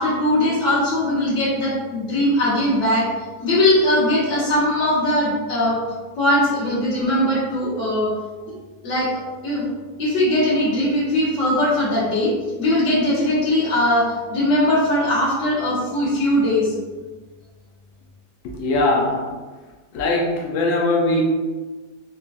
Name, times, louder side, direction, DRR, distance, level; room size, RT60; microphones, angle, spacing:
voice 1, 0.0-3.1 3.4-5.8 6.2-8.1 8.8-9.7 10.0-16.7, left 1 dB, 50° left, -10 dB, 1.5 m, -20 dB
voice 2, 18.4-19.3 19.9-21.2, left 2 dB, 75° left, -1 dB, 0.7 m, -20 dB
3.8 x 2.2 x 2.5 m, 1.3 s
omnidirectional pair, 1.8 m